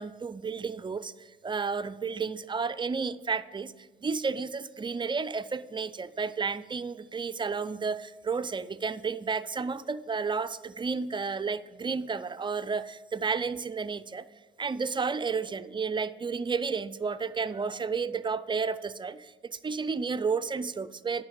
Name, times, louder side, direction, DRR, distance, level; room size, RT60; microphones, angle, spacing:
voice 1, 0.0-14.3 14.6-21.2, right 5 dB, 25° right, 13 dB, 0.4 m, -32 dB
9.5 x 5.9 x 6.4 m, 1.3 s
cardioid pair, 90°, 20 cm